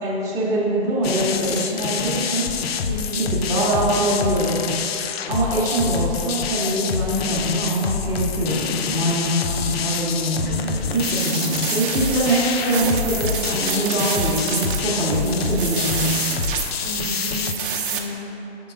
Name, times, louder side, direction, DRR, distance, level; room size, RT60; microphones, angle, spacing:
voice 1, 0.0-2.5 3.1-4.5 5.3-10.5 10.9-16.1, right 1 dB, 10° right, -9 dB, 0.9 m, -23 dB
sound 1, 1.0-17.5, left 6 dB, 65° left, 0.5 m, -26 dB
voice 2, 2.9-3.3 10.4-11.1 16.8-17.5 17.9-18.3, left 1 dB, 35° left, -1 dB, 0.9 m, -32 dB
sound 2, 10.9-18.0, right 7 dB, 50° right, 0.7 m, -29 dB
5.9 x 3.8 x 4.9 m, 3.0 s
hypercardioid pair, 130°, 33 cm